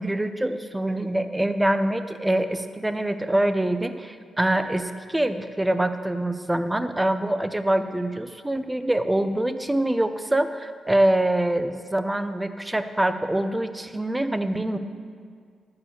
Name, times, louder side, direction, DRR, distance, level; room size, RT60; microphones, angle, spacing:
voice 1, 0.0-14.8, right 1 dB, 15° right, 9 dB, 0.6 m, -25 dB
11.5 x 4.8 x 8.2 m, 2.1 s
cardioid pair, 65°, 0 cm